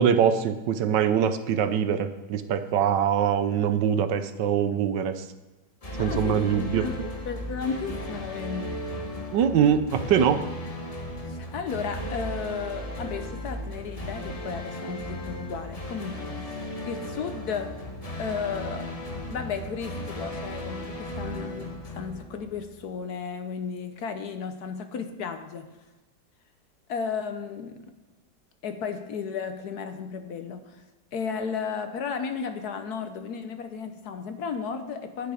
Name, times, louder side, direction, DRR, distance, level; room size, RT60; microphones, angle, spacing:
voice 1, 0.0-5.2 6.0-7.1 9.3-10.4, right 8 dB, 70° right, 10 dB, 1.3 m, -23 dB
sound 1, 5.8-22.9, left 1 dB, 20° left, 1.2 m, -36 dB
voice 2, 6.0-6.9 7.3-8.9 11.3-16.6 16.8-17.8 18.2-19.0 19.3-25.7 26.9-27.9 28.6-30.8 31.1-35.3, left 6 dB, 60° left, 8 dB, 1.2 m, -34 dB
10.0 x 9.6 x 5.0 m, 1.1 s
omnidirectional pair, 2.0 m